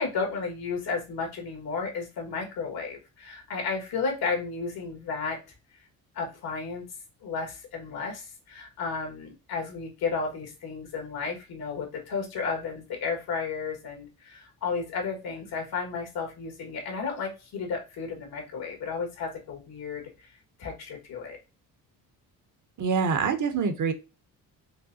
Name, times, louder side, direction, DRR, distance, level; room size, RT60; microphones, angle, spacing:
voice 1, 0.0-5.4 6.1-6.8 7.2-21.4, left 5 dB, 80° left, 1 dB, 1.7 m, -33 dB
voice 2, 22.8-23.9, right 5 dB, 50° right, 8 dB, 0.9 m, -25 dB
5.3 x 2.2 x 2.7 m, 0.28 s
cardioid pair, 80°, 37 cm